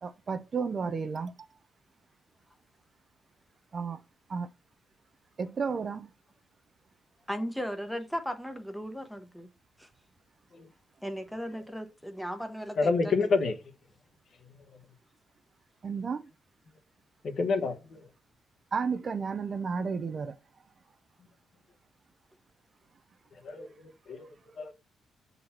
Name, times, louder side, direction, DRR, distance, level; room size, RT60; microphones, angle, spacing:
voice 1, 0.0-1.5 3.7-4.0 4.3-4.5 5.4-6.1 15.8-16.2 18.7-20.3, right 5 dB, 35° right, 0.5 m, -32 dB
voice 2, 7.3-9.5 9.8-9.9 11.0-13.4, equal, ahead, 0.9 m, -36 dB
voice 3, 12.8-13.5 17.2-18.0 23.4-23.7 24.1-24.7, left 4 dB, 50° left, 1.2 m, -28 dB
7.4 x 4.0 x 4.3 m
cardioid pair, 145°, 0 cm